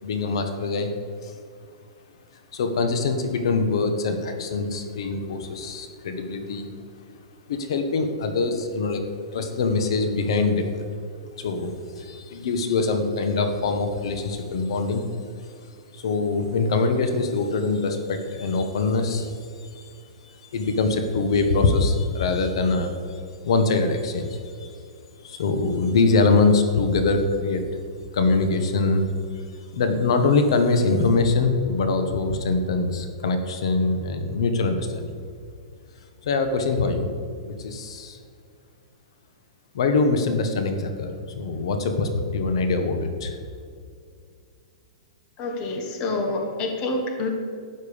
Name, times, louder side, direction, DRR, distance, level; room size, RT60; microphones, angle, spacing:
voice 1, 0.0-0.9 1.2-1.4 2.3-6.7 7.5-10.8 11.4-15.1 15.4-15.5 15.9-24.7 25.2-27.6 28.1-29.0 29.3-35.2 36.2-37.1 37.5-38.2 39.7-43.4, left 3 dB, 55° left, 7 dB, 1.2 m, -24 dB
voice 2, 45.4-47.3, left 2 dB, 25° left, 3 dB, 1.2 m, -27 dB
12.5 x 9.0 x 5.1 m, 2.3 s
hypercardioid pair, 175°, 3 cm